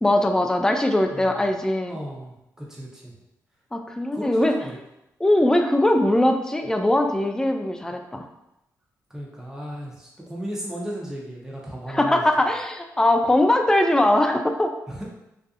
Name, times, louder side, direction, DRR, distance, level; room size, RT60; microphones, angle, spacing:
voice 1, 0.0-2.0 3.7-4.5 5.2-8.3 11.9-14.7, left 1 dB, 10° left, 5 dB, 0.3 m, -21 dB
voice 2, 1.9-3.1 4.1-4.8 9.1-12.2 14.9-15.0, right 1 dB, 5° right, -4 dB, 0.7 m, -35 dB
2.5 x 2.4 x 2.4 m, 0.87 s
supercardioid pair, 45°, 7 cm